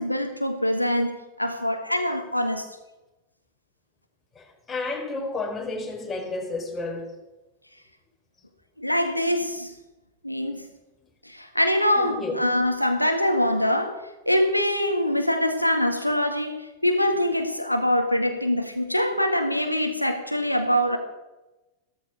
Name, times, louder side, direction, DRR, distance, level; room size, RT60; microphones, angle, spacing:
voice 1, 0.0-2.6 8.8-9.7 10.2-10.7 11.2-21.0, left 1 dB, 90° left, 1.8 m, -24 dB
voice 2, 4.4-7.1 12.0-12.4, left 3 dB, 15° left, 4.6 m, -31 dB
16.0 x 14.0 x 6.5 m
figure-of-eight pair, 90°, 0 cm